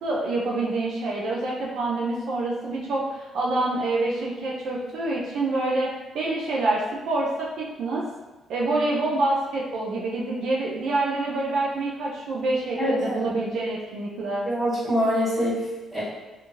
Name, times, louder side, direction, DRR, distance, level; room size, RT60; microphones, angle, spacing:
voice 1, 0.0-5.9 6.1-8.0 8.5-14.5, right 2 dB, 75° right, -4 dB, 0.5 m, -26 dB
voice 2, 12.8-13.2 14.4-16.0, equal, 15° right, -11 dB, 1.4 m, -25 dB
2.6 x 2.5 x 2.9 m, 1.1 s
cardioid pair, 90°, 0 cm